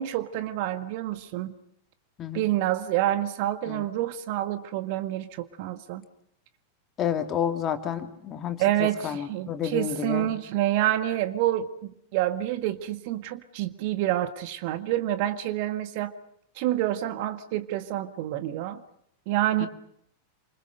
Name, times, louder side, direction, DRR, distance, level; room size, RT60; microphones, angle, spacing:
voice 1, 0.0-1.5 2.3-6.0 8.6-16.1 16.6-18.8 19.3-19.7, right 13 dB, 45° right, 10 dB, 1.7 m, -28 dB
voice 2, 7.0-10.3 19.6-19.7, left 9 dB, 30° left, 7 dB, 2.8 m, -30 dB
28.0 x 26.5 x 6.7 m, 0.71 s
figure-of-eight pair, 90°, 0 cm